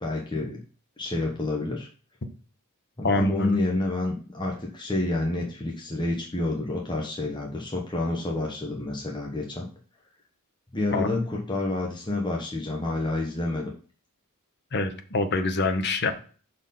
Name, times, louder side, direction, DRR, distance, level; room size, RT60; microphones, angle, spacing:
voice 1, 0.0-0.6 1.0-1.9 3.0-9.7 10.7-13.7, left 2 dB, 20° left, -1 dB, 1.1 m, -29 dB
voice 2, 3.0-3.6 10.9-11.1 14.7-16.1, left 2 dB, 50° left, 7 dB, 1.0 m, -25 dB
6.1 x 4.4 x 5.4 m, 0.39 s
head